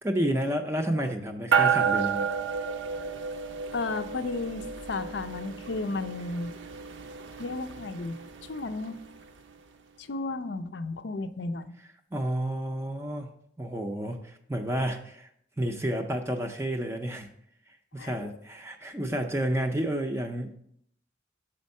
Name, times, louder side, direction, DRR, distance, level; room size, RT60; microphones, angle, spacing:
voice 1, 0.0-2.3 12.1-13.3 13.6-15.3 15.6-17.3 17.7-20.6, right 1 dB, 15° right, 3 dB, 0.4 m, -30 dB
sound 1, 1.5-9.2, right 6 dB, 85° right, 0.6 m, -31 dB
voice 2, 3.7-6.5 7.4-8.2 8.4-9.0 10.0-11.8 18.0-18.3, left 3 dB, 70° left, 10 dB, 0.5 m, -33 dB
6.4 x 4.3 x 5.3 m, 0.70 s
head